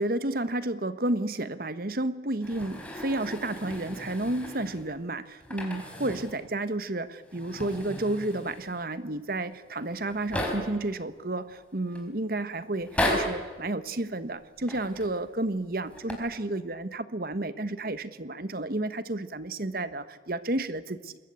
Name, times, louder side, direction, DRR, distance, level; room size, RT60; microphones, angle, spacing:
voice 1, 0.0-21.2, right 2 dB, 55° right, 12 dB, 1.4 m, -31 dB
sound 1, 2.4-4.9 5.4-6.4 6.7-6.8 7.2-8.8 9.5-9.6 9.8-10.9 11.5-12.0 12.7-13.5 14.6-15.2 15.8-16.1, left 1 dB, 10° left, 4.9 m, -35 dB
26.5 x 21.5 x 8.4 m, 1.4 s
head